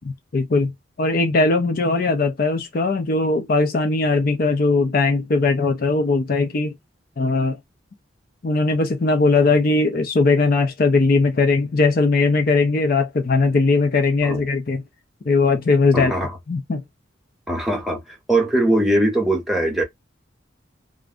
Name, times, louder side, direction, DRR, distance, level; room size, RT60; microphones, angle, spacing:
voice 1, 0.3-0.7 1.0-6.7 7.2-7.6 8.4-14.8 15.3-16.1 16.5-16.8, left 3 dB, 45° left, 0.4 m, -19 dB
voice 2, 15.9-16.4 17.5-19.8, right 1 dB, ahead, 0.6 m, -21 dB
2.5 x 2.1 x 3.5 m
head